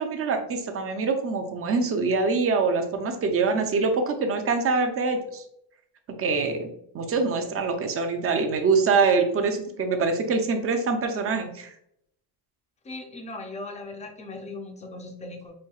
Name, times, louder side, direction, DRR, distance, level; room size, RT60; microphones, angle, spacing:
voice 1, 0.0-5.4 6.2-11.7, right 4 dB, 35° right, 6 dB, 0.5 m, -24 dB
voice 2, 12.8-15.5, left 2 dB, 15° left, 3 dB, 0.4 m, -38 dB
4.4 x 2.6 x 2.3 m, 0.74 s
cardioid pair, 145°, 41 cm